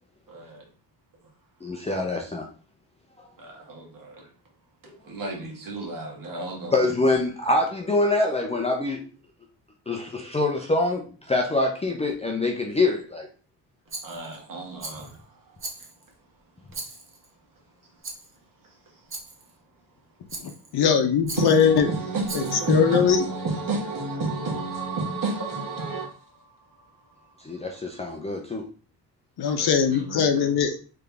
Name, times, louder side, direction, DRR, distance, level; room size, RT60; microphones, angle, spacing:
voice 1, 0.3-0.6 3.4-4.3 5.1-6.9 14.0-15.6 21.3-26.3 29.6-30.5, right 3 dB, 50° right, 1.7 m, -31 dB
voice 2, 1.6-2.5 6.7-9.0 9.9-13.3 27.4-28.6, left 2 dB, 15° left, 0.6 m, -25 dB
Rattle, 13.9-14.4 14.8-15.2 15.6-16.1 16.7-17.3 18.0-18.3 19.1-19.5 20.3-20.7 21.2-21.7 22.2-22.7, right 3 dB, 30° right, 1.0 m, -38 dB
voice 3, 20.4-21.9 22.3-23.2 29.4-30.8, left 7 dB, 60° left, 0.8 m, -21 dB
3.8 x 3.4 x 3.4 m
cardioid pair, 130°, 43 cm